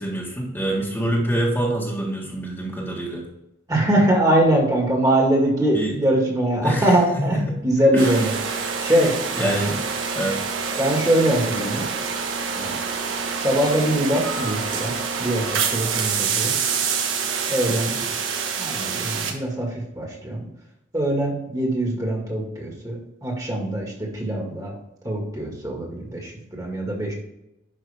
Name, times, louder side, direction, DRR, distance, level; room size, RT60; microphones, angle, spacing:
voice 1, 0.0-3.3 5.7-5.9 6.6-7.6 7.9-8.1 9.4-9.8 10.2-10.4 17.7-18.1, right 1 dB, 10° left, -3 dB, 1.5 m, -26 dB
voice 2, 3.7-8.3 8.8-9.7 10.8-11.9 12.5-12.8 13.4-14.9 15.2-16.5 17.5-17.9 18.6-20.4 20.9-24.7 25.0-27.1, right 1 dB, 20° right, 0 dB, 2.0 m, -22 dB
sound 1, 8.0-19.3, right 6 dB, 80° right, 1.2 m, -26 dB
11.0 x 5.4 x 3.5 m, 0.87 s
head